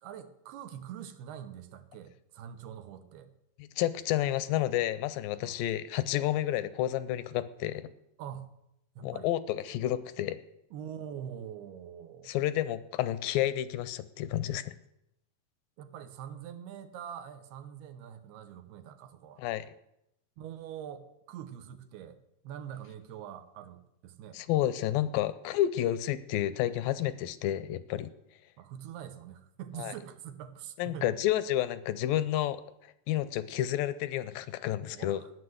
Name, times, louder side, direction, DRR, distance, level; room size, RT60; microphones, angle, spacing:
voice 1, 0.0-3.3 5.4-5.6 8.2-8.5 9.0-9.3 10.7-12.4 15.8-19.4 20.4-24.4 28.6-31.1 34.9-35.3, right 9 dB, 90° right, 9 dB, 3.1 m, -44 dB
voice 2, 3.6-7.9 9.0-10.4 12.3-14.7 19.4-19.7 24.3-28.1 29.8-29.9 30.8-32.6 33.1-35.2, left 13 dB, 80° left, 15 dB, 2.1 m, -30 dB
14.0 x 9.8 x 7.8 m, 0.83 s
omnidirectional pair, 4.5 m